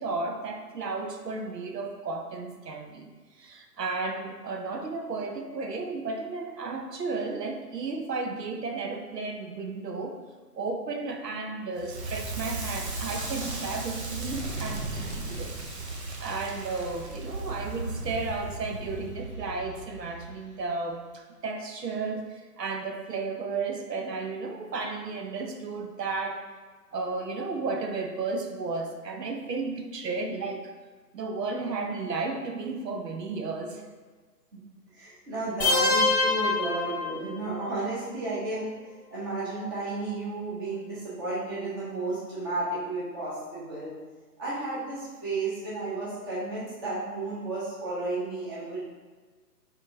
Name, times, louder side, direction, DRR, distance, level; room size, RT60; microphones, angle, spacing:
voice 1, 0.0-3.1 3.4-10.2 10.5-15.5 15.9-26.4 26.9-30.7 31.1-33.8, right 3 dB, 75° right, 4 dB, 0.8 m, -33 dB
Crackle, 11.8-20.7, right 2 dB, 45° right, 0.7 m, -36 dB
voice 2, 34.9-38.7 39.1-43.9 44.4-48.8, right 2 dB, 15° right, -9 dB, 0.9 m, -33 dB
sound 1, 35.6-37.6, left 3 dB, 30° left, 1.0 m, -25 dB
5.0 x 3.8 x 2.7 m, 1.4 s
figure-of-eight pair, 150°, 49 cm